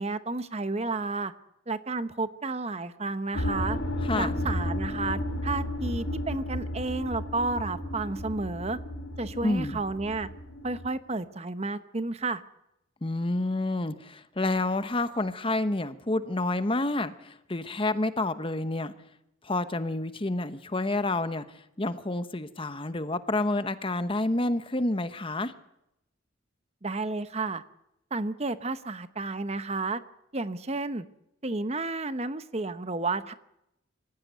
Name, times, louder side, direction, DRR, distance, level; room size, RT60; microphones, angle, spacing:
voice 1, 0.0-1.3 1.7-3.8 4.1-8.8 9.2-10.3 10.6-12.4 26.8-27.6 28.1-30.0 30.3-31.1 31.4-33.3, right 3 dB, 30° right, 1.0 m, -31 dB
sound 1, 3.3-10.9, left 1 dB, 85° left, 4.2 m, -33 dB
voice 2, 4.0-4.4 9.4-9.8 13.0-18.9 19.4-21.4 21.8-25.5, left 2 dB, 25° left, 1.0 m, -29 dB
25.5 x 16.0 x 9.3 m
head